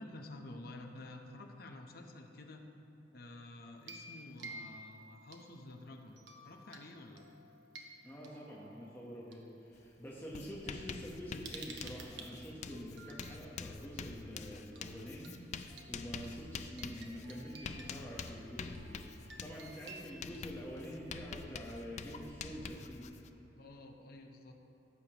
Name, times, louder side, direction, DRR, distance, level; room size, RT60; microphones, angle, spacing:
voice 1, 0.0-2.6 3.1-7.2 23.6-24.6, left 2 dB, 60° left, 3 dB, 0.8 m, -50 dB
sound 1, 3.8-5.7 6.2-6.8 7.2-9.4 10.2-10.3 10.6-13.4 14.8-14.9 15.2-15.3 15.7-21.1, right 3 dB, 85° right, 0.9 m, -53 dB
voice 2, 8.0-23.0, equal, 10° left, -6 dB, 1.0 m, -47 dB
Writing, 9.8-9.9 10.2-23.3, left 5 dB, 40° left, 0.3 m, -47 dB
15.0 x 6.7 x 3.0 m, 2.9 s
head